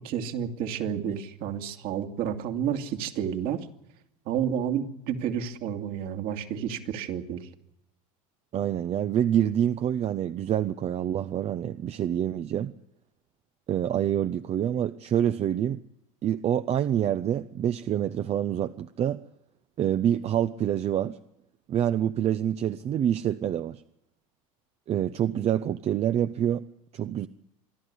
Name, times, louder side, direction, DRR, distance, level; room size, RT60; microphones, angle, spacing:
voice 1, 0.0-3.7 4.3-7.5, right 9 dB, 55° right, 2.4 m, -30 dB
voice 2, 8.5-12.7 13.7-15.8 16.2-19.2 19.8-21.2 21.7-23.8 24.9-26.6 26.9-27.3, right 10 dB, 35° right, 0.8 m, -26 dB
27.0 x 11.0 x 9.9 m
hypercardioid pair, 100°, 18 cm